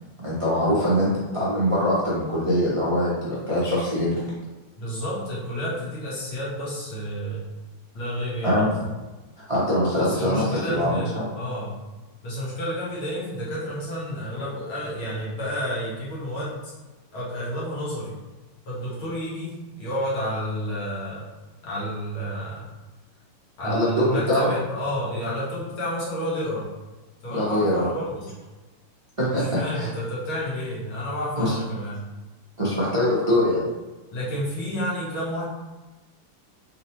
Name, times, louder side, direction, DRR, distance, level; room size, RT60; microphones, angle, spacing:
voice 1, 0.2-4.2 8.4-8.7 9.5-11.3 23.6-24.5 27.3-27.9 29.2-29.9 31.4-31.6 32.6-33.6, equal, 40° right, -9 dB, 0.4 m, -23 dB
voice 2, 4.8-7.4 7.9-8.6 9.9-11.7 12.2-16.7 17.1-18.1 18.7-21.2 21.6-22.7 23.6-26.7 27.2-28.3 29.3-32.0 34.1-35.4, equal, 70° left, -7 dB, 2.2 m, -30 dB
4.1 x 4.0 x 2.9 m, 1.2 s
omnidirectional pair, 2.4 m